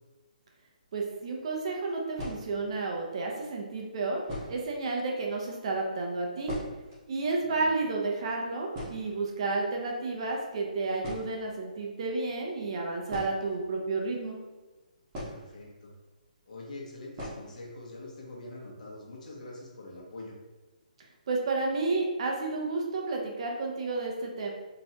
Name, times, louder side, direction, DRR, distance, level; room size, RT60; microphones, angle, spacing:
voice 1, 0.9-4.2 4.5-6.5 7.1-14.4 21.3-24.5, right 3 dB, 40° right, 0 dB, 0.8 m, -31 dB
sound 1, 1.2-1.3 2.1-2.8 3.7-3.8 4.2-4.8 5.1-5.2 5.4-5.6 5.9-7.0 7.3-7.4 7.7-8.0 8.3-8.4 8.7-9.6 10.6-10.7 11.0-11.6 13.0-14.1 15.1-15.9 16.2-16.3 17.1-17.6 17.9-18.0 18.4-18.5 18.9-19.3, equal, 20° right, 1.3 m, -40 dB
voice 2, 15.3-15.9 16.5-20.3, left 2 dB, 60° left, -3 dB, 1.4 m, -44 dB
4.3 x 3.2 x 2.9 m, 1.2 s
hypercardioid pair, 165°, 5 cm